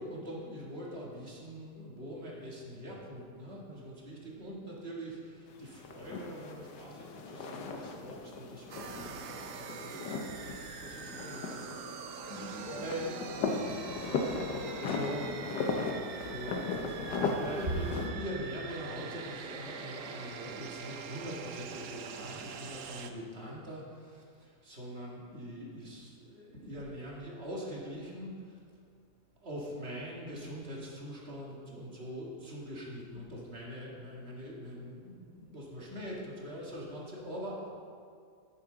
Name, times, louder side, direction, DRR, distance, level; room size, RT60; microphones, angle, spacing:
voice 1, 0.0-10.4 10.8-11.7 12.8-13.1 14.3-14.4 14.9-15.4 15.9-16.9 17.4-28.6 29.4-37.7, equal, 40° right, -4 dB, 1.9 m, -42 dB
sound 1, 5.5-18.1, left 4 dB, 90° left, 1.5 m, -37 dB
sound 2, 8.7-23.1, right 6 dB, 65° right, 0.9 m, -44 dB
voice 2, 12.2-13.0 13.4-15.3, left 1 dB, 65° left, 0 dB, 1.8 m, -47 dB
10.0 x 9.5 x 3.8 m, 2.3 s
omnidirectional pair, 1.8 m